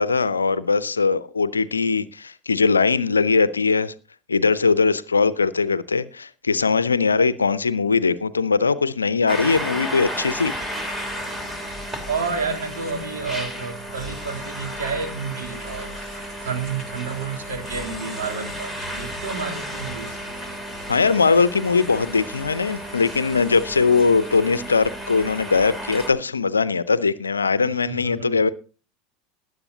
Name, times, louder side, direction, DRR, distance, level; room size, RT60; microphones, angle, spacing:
voice 1, 0.0-3.9 4.3-10.6 20.9-28.5, left 4 dB, 80° left, 0.6 m, -20 dB
sound 1, 9.3-26.1, equal, 15° right, 3.3 m, -33 dB
sound 2, 10.9-13.4 14.0-14.1 15.3-25.1, right 1 dB, 35° right, 7.7 m, -47 dB
voice 2, 12.1-15.9 16.4-20.2 27.6-28.5, right 5 dB, 65° right, 3.1 m, -30 dB
19.5 x 9.4 x 2.8 m
figure-of-eight pair, 75°, 0 cm